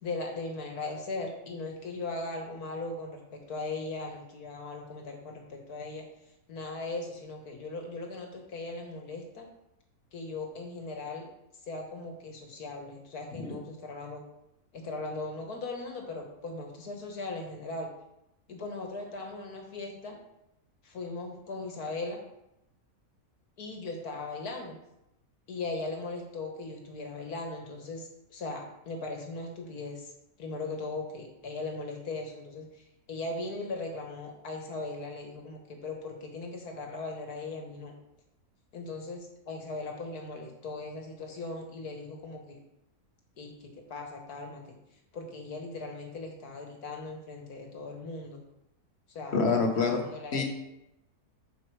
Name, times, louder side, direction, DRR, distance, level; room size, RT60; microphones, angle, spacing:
voice 1, 0.0-6.0 6.5-9.5 10.1-11.3 11.7-14.2 14.7-17.9 18.5-20.2 20.8-22.2 23.6-24.8 25.5-30.1 30.4-37.9 38.7-42.6 43.4-44.6 45.1-48.4 49.1-49.4 49.9-50.4, left 3 dB, 80° left, 2 dB, 2.0 m, -38 dB
voice 2, 49.3-50.0 50.3-50.4, left 4 dB, 45° left, 1 dB, 1.6 m, -26 dB
7.7 x 6.8 x 4.8 m, 0.84 s
omnidirectional pair, 1.6 m